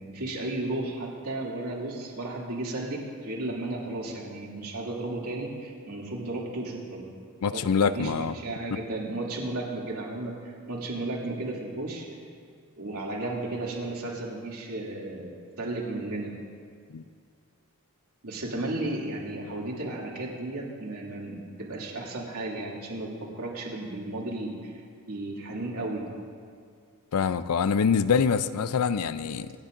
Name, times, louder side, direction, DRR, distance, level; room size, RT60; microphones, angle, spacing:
voice 1, 0.0-7.1 7.4-12.1 12.8-16.3 18.2-24.7 25.1-26.1, right 2 dB, 80° right, -4 dB, 2.6 m, -34 dB
voice 2, 7.4-8.3 16.9-17.0 27.1-29.5, left 6 dB, 90° left, 14 dB, 0.4 m, -25 dB
26.0 x 10.0 x 2.6 m, 2.1 s
head